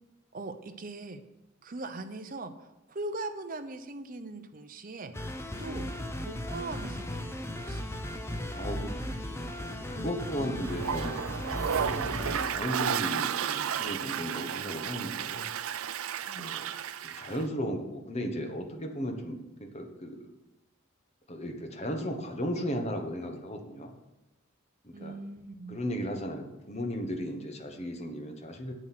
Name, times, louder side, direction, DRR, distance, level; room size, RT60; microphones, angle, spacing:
voice 1, 0.3-1.2 1.6-5.2 5.6-5.9 6.2-8.0 10.4-10.6 16.3-16.5 24.9-25.8, right 2 dB, 40° right, 8 dB, 0.7 m, -40 dB
sound 1, 5.1-12.5, left 1 dB, 10° left, 0.6 m, -36 dB
voice 2, 8.5-9.4 9.8-11.1 11.7-15.5 16.4-16.7 17.0-20.4 21.3-23.9 24.8-25.1 25.7-28.7, equal, 30° left, 4 dB, 1.1 m, -36 dB
Toilet flush, 10.6-17.4, right 8 dB, 85° right, 0.5 m, -32 dB
7.9 x 7.8 x 5.9 m, 0.97 s
head